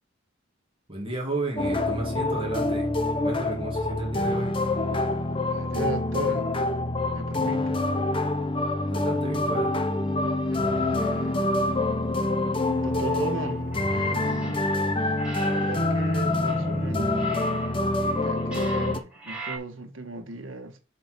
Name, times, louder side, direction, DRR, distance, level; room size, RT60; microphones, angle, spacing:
voice 1, 0.9-2.9 3.2-4.6 8.9-9.8, right 2 dB, 25° right, 2.2 m, -33 dB
sound 1, 1.6-19.0, left 2 dB, 25° left, 0.8 m, -26 dB
voice 2, 5.5-6.5 7.1-7.8 10.9-11.5 12.6-14.7 15.4-17.2 18.2-20.8, right 2 dB, 80° right, 1.6 m, -36 dB
sound 2, 10.5-11.7 12.6-13.9 14.5-16.5 17.3-17.6, right 2 dB, 50° right, 1.9 m, -44 dB
sound 3, 13.7-14.9 15.2-19.6, right 1 dB, 5° right, 2.5 m, -38 dB
7.4 x 3.9 x 6.2 m
head